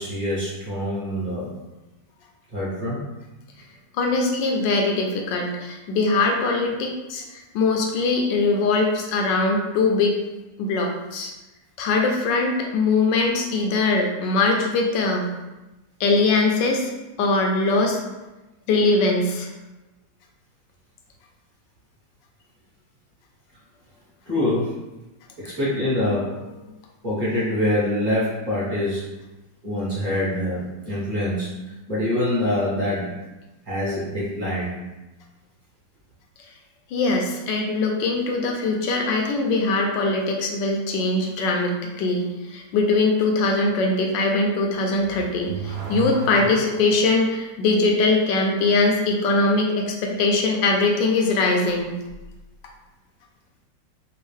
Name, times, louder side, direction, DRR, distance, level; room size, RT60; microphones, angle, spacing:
voice 1, 0.0-1.5 2.5-3.1 24.3-24.8 25.4-26.6 27.0-29.0 29.6-31.5 31.9-33.1 33.7-34.7, left 1 dB, 30° right, -10 dB, 1.3 m, -25 dB
voice 2, 3.9-10.2 10.6-11.3 11.8-15.3 16.0-16.9 17.2-18.0 18.7-19.5 36.9-51.9, left 3 dB, 80° left, 1 dB, 1.2 m, -21 dB
Car / Accelerating revving vroom, 44.9-47.2, right 1 dB, 70° right, 1.1 m, -33 dB
3.6 x 2.3 x 3.3 m, 1.0 s
omnidirectional pair, 1.9 m